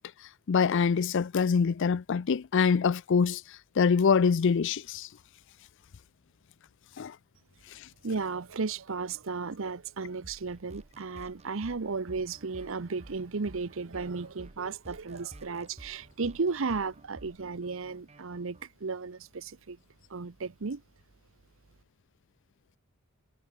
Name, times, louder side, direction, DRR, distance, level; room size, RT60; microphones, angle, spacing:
voice 1, 0.5-5.1 7.0-7.2 7.7-7.9, left 6 dB, 60° left, 0.4 m, -25 dB
voice 2, 8.0-19.8 20.1-20.8, right 4 dB, 65° right, 0.8 m, -34 dB
sound 1, 10.2-18.6, right 2 dB, 30° right, 0.9 m, -52 dB
head